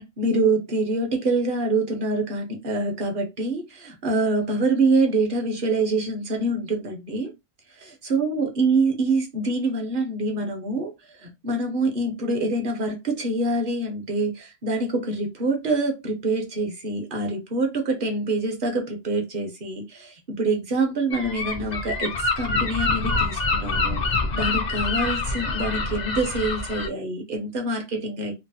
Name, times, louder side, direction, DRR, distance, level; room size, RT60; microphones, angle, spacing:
voice 1, 0.2-7.3 7.7-28.3, right 2 dB, 50° right, 0.9 m, -25 dB
Gull seagull, 21.1-26.9, left 3 dB, 50° left, 0.5 m, -26 dB
3.0 x 2.0 x 2.7 m
omnidirectional pair, 1.2 m